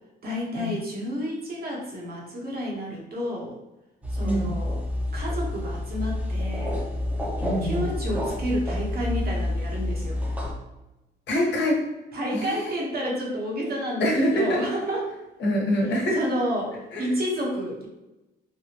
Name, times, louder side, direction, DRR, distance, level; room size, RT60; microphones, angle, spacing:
voice 1, 0.2-3.5 4.1-4.8 5.1-6.8 7.6-10.2 12.1-15.1 16.1-17.9, equal, 50° right, -2 dB, 1.1 m, -30 dB
sound 1, 4.0-10.5, left 1 dB, 5° right, 0.8 m, -28 dB
voice 2, 4.2-4.6 7.4-7.9 11.3-11.8 12.3-12.7 14.0-14.6 15.4-16.2 16.9-17.1, equal, 60° left, -2 dB, 1.1 m, -25 dB
3.4 x 2.2 x 2.9 m, 0.99 s
cardioid pair, 90°, 20 cm